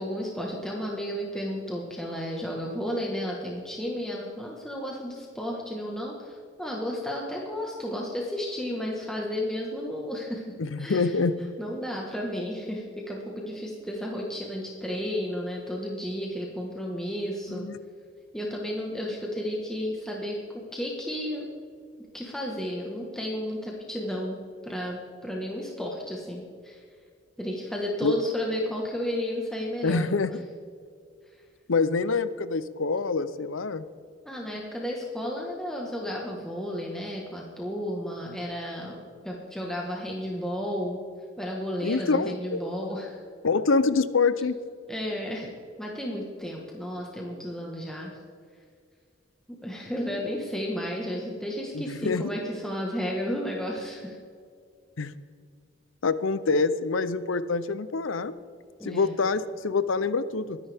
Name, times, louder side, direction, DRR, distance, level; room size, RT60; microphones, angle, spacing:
voice 1, 0.0-10.4 10.8-11.2 11.6-17.7 18.3-21.5 22.1-26.8 27.4-30.1 34.2-39.0 39.2-41.0 41.4-43.2 44.9-45.5 45.8-48.1 49.6-54.2 58.8-59.2, equal, 5° left, -2 dB, 1.4 m, -33 dB
voice 2, 10.6-11.6 17.5-17.8 28.0-28.2 29.8-30.3 31.7-33.9 41.8-42.6 43.4-44.6 51.7-52.2 55.0-55.1 56.0-58.3 58.8-60.6, left 4 dB, 85° left, 14 dB, 0.7 m, -26 dB
22.5 x 10.0 x 3.5 m, 2.2 s
head